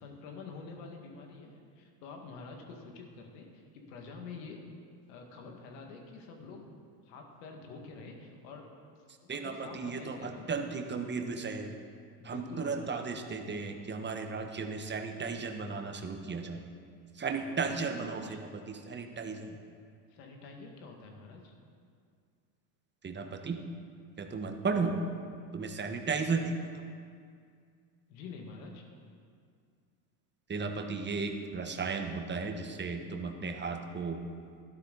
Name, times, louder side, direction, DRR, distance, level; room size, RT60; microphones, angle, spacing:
voice 1, 0.0-4.6 5.1-8.8 9.2-10.5 12.2-13.0 17.4-18.4 20.1-21.5 28.1-28.8, left 4 dB, 75° left, 2 dB, 2.1 m, -47 dB
voice 2, 9.3-11.7 12.2-16.6 17.1-19.6 23.0-23.6 24.2-25.0 25.5-26.6 30.5-34.2, right 4 dB, 20° right, 4 dB, 1.2 m, -35 dB
12.5 x 11.5 x 4.0 m, 2.2 s
supercardioid pair, 90°, 49 cm